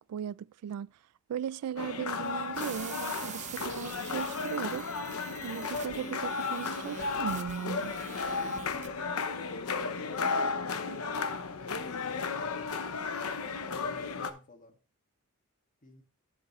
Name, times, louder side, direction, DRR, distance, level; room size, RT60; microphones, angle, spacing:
voice 1, 0.1-0.9 1.3-4.9 5.4-7.9, right 9 dB, 80° right, 0.3 m, -37 dB
sound 1, 1.8-14.3, left 4 dB, 75° left, 0.8 m, -34 dB
sound 2, 2.5-8.9, right 7 dB, 35° right, 0.7 m, -45 dB
voice 2, 9.3-13.0 13.7-14.8 15.8-16.0, left 1 dB, 35° left, 1.8 m, -54 dB
10.0 x 7.4 x 3.1 m
head